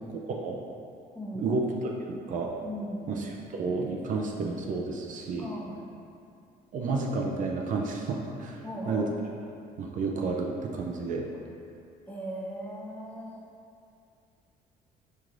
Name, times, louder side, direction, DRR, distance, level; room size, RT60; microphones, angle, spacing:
voice 1, 0.1-0.6 1.3-2.5 3.1-5.5 6.7-8.6 8.9-9.1 9.8-11.3, right 3 dB, 50° right, 0 dB, 0.4 m, -31 dB
voice 2, 1.1-1.6 2.6-3.2 5.4-5.8 8.6-9.1 12.1-13.4, equal, 10° left, -4 dB, 0.7 m, -38 dB
5.6 x 3.1 x 2.5 m, 2.5 s
cardioid pair, 110°, 17 cm